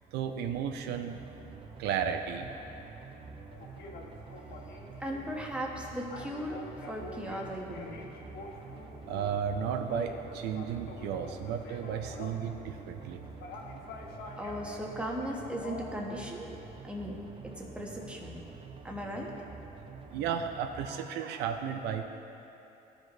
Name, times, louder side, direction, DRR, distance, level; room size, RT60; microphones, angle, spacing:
voice 1, 0.1-1.2 1.8-2.5 9.1-13.3 13.7-13.8 19.9-22.0, right 7 dB, 80° right, 5 dB, 0.5 m, -34 dB
sound 1, 1.1-20.9, right 4 dB, 30° right, 0.7 m, -48 dB
sound 2, 3.5-16.8, left 3 dB, 75° left, 0.9 m, -47 dB
voice 2, 5.0-6.6 6.9-8.0 14.4-16.5 16.8-17.2 17.4-18.4 18.8-19.3, equal, 5° right, -1 dB, 1.1 m, -37 dB
14.0 x 5.1 x 3.1 m, 2.9 s
cardioid pair, 110°, 17 cm